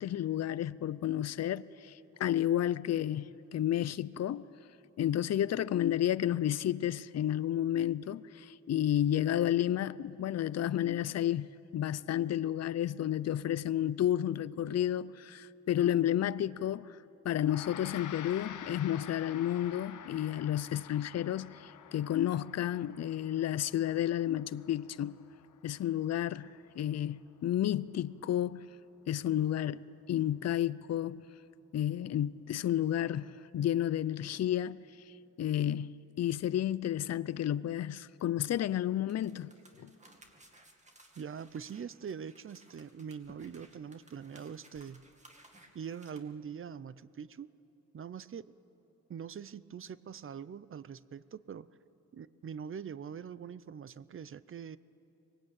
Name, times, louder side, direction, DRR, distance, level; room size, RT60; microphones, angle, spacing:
voice 1, 0.0-4.5 5.0-11.5 11.7-17.0 17.2-25.2 25.6-28.7 29.1-31.2 31.7-34.8 35.4-39.5 39.8-39.9, left 11 dB, 55° left, 0.5 m, -31 dB
Gong, 17.4-27.0, left 9 dB, 75° left, 1.0 m, -49 dB
sound 1, 39.1-46.2, right 1 dB, 20° right, 2.3 m, -59 dB
voice 2, 41.2-45.1 45.7-47.5 47.9-48.5 49.1-51.7 52.1-54.8, right 7 dB, 40° right, 0.6 m, -43 dB
24.0 x 20.5 x 8.8 m
cardioid pair, 110°, 31 cm